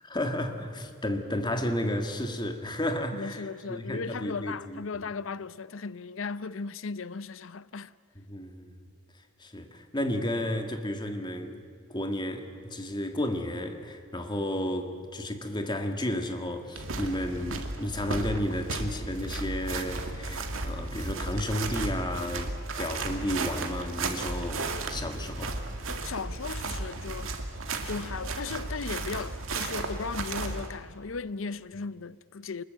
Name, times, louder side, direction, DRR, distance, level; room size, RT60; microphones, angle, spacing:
voice 1, 0.0-4.8 8.3-8.7 9.4-11.6 11.9-25.5, left 1 dB, 20° left, 1.9 m, -32 dB
voice 2, 3.1-7.9 25.9-27.3 27.8-32.6, left 4 dB, 65° left, 0.6 m, -36 dB
sound 1, 16.8-30.7, right 3 dB, 70° right, 2.1 m, -34 dB
25.0 x 21.0 x 7.8 m
head